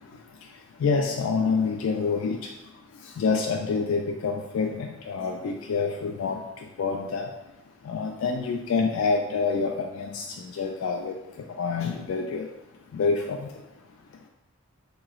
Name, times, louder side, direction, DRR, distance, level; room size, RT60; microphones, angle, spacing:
voice 1, 0.8-2.5 3.2-6.4 6.8-7.3 7.9-10.2 10.5-11.2 11.6-12.5 12.9-13.5, left 4 dB, 80° left, 2 dB, 0.3 m, -27 dB
4.6 x 2.9 x 2.4 m, 0.94 s
head